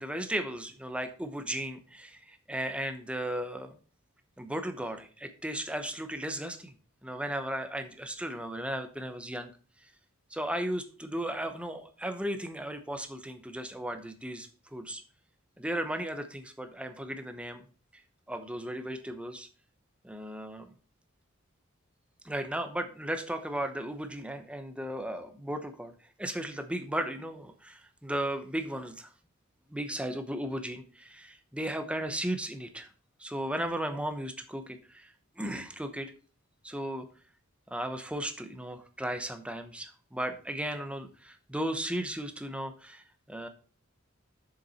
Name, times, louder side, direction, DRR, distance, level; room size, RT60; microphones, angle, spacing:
voice 1, 0.0-3.8 4.4-6.7 7.0-9.5 10.3-15.0 15.6-17.6 18.3-19.5 20.0-20.7 22.2-25.9 26.2-29.1 29.7-32.9 33.2-36.1 36.6-37.1 37.7-43.0 43.3-43.5, right 1 dB, 5° right, 7 dB, 1.0 m, -35 dB
7.4 x 6.7 x 4.2 m, 0.38 s
head